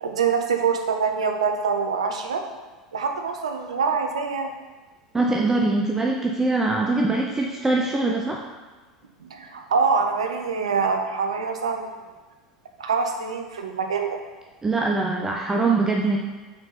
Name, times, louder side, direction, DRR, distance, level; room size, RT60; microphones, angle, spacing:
voice 1, 0.0-2.4 2.9-4.5 9.2-12.0 12.8-14.2, right 5 dB, 75° right, 4 dB, 0.6 m, -25 dB
voice 2, 5.1-8.4 14.6-16.2, right 3 dB, 15° right, 0 dB, 0.5 m, -22 dB
5.5 x 4.3 x 4.0 m, 1.3 s
figure-of-eight pair, 80°, 3 cm